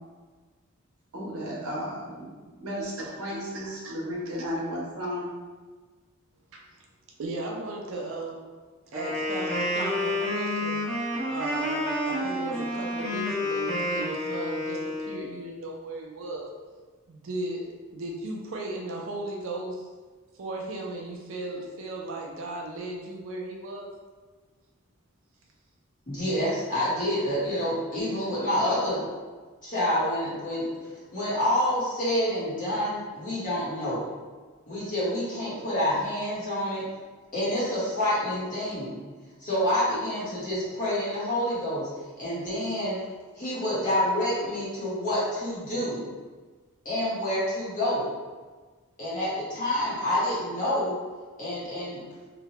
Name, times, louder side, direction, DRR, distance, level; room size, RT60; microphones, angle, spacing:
voice 1, 1.1-5.3, equal, 80° right, -5 dB, 0.8 m, -34 dB
voice 2, 3.5-3.9 7.2-8.4 8.9-10.8 11.3-16.5 17.1-19.9 20.4-23.9, right 2 dB, 60° right, -1 dB, 0.4 m, -36 dB
Wind instrument woodwind instrument, 8.9-15.2, left 1 dB, 5° left, 0.7 m, -29 dB
voice 3, 26.1-29.1 29.6-30.7 31.1-34.0 34.7-36.9 37.3-39.0 39.4-41.9 42.2-43.0 43.4-46.0 46.8-48.1 49.0-50.9 51.4-52.0, left 1 dB, 35° left, -9 dB, 1.0 m, -28 dB
2.8 x 2.1 x 2.9 m, 1.4 s
head